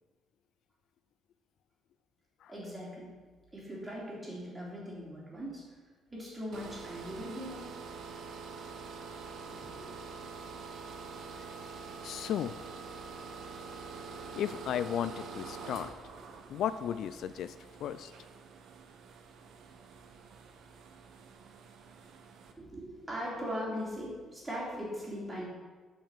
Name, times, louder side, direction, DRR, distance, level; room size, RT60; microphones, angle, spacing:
voice 1, 2.5-3.1 3.5-5.8 6.1-7.7 9.4-9.9 22.6-25.5, equal, 15° right, -5 dB, 3.3 m, -40 dB
sound 1, 6.5-22.5, right 4 dB, 60° right, 1.1 m, -46 dB
voice 2, 12.0-12.6 14.3-15.9 16.5-18.1, left 9 dB, 65° left, 13 dB, 0.3 m, -35 dB
8.8 x 5.6 x 7.3 m, 1.4 s
cardioid pair, 145°, 0 cm